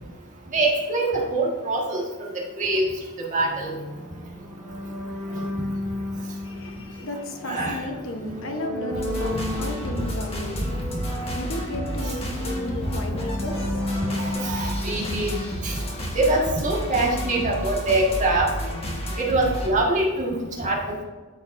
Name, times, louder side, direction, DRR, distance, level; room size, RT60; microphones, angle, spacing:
voice 1, 0.5-2.0 2.6-2.9 3.3-3.7 5.3-5.4 7.5-7.8 9.3-9.4 14.4-15.3 15.6-15.8 16.1-18.5 19.2-21.0, right 2 dB, 35° right, -3 dB, 1.6 m, -23 dB
sound 1, 3.4-15.9, left 1 dB, 5° right, 2.0 m, -34 dB
voice 2, 6.3-14.0, left 2 dB, 65° left, 4 dB, 1.0 m, -34 dB
sound 2, 8.9-19.7, equal, 25° left, 1.5 m, -31 dB
13.0 x 5.1 x 2.6 m, 1.4 s
head